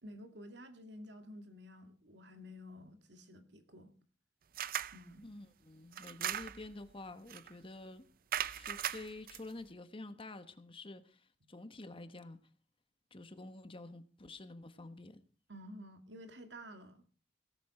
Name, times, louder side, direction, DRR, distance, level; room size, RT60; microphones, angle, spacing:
voice 1, 0.0-3.9 4.9-5.3 15.5-17.0, equal, 75° right, 2.4 m, -51 dB
sound 1, 4.6-5.0 5.9-6.7 7.3-7.5 8.3-9.4, right 10 dB, 55° right, 0.6 m, -38 dB
voice 2, 5.2-8.0 8.5-12.4 13.1-15.2, left 2 dB, 30° left, 1.3 m, -49 dB
17.5 x 13.0 x 4.4 m
head